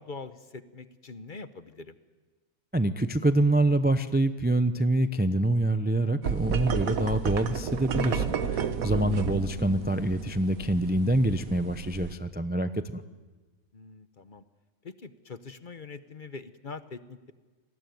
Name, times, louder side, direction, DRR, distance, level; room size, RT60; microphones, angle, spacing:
voice 1, 0.0-2.0 8.9-9.1 13.7-14.4 14.8-17.3, left 4 dB, 40° left, 11 dB, 1.0 m, -43 dB
voice 2, 2.7-8.3 8.5-13.0, right 1 dB, 10° right, 10 dB, 0.5 m, -26 dB
sound 1, 6.2-12.1, right 6 dB, 90° right, 1.6 m, -32 dB
28.0 x 20.0 x 9.3 m, 1.3 s
omnidirectional pair, 1.4 m